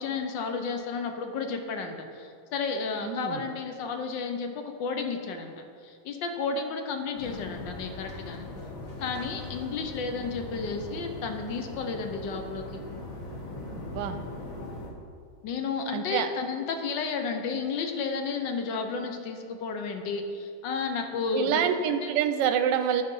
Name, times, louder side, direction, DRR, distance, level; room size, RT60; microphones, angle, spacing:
voice 1, 0.0-5.5 5.8-8.5 9.0-12.8 15.4-21.6 21.9-22.1, left 4 dB, 70° left, 5 dB, 1.4 m, -32 dB
voice 2, 3.0-3.4 13.7-14.2 15.9-16.3 21.3-23.0, right 8 dB, 70° right, 8 dB, 1.2 m, -27 dB
sound 1, 7.2-14.9, left 2 dB, 45° left, 1.4 m, -40 dB
11.5 x 4.5 x 5.4 m, 2.2 s
omnidirectional pair, 2.2 m